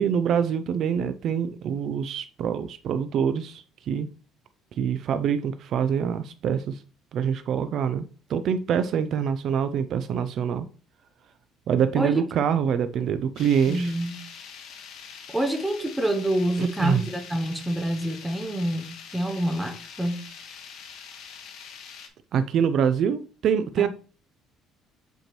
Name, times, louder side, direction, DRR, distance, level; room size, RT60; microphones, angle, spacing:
voice 1, 0.0-4.1 4.8-6.8 7.1-10.7 11.7-13.9 16.6-17.0 22.3-23.9, right 7 dB, 45° right, 0.4 m, -25 dB
sound 1, 13.4-22.1, left 6 dB, 60° left, 1.2 m, -44 dB
voice 2, 13.7-14.2 15.3-20.2 23.8-23.9, right 1 dB, 5° right, 0.7 m, -27 dB
7.9 x 4.4 x 3.0 m
cardioid pair, 170°, 0 cm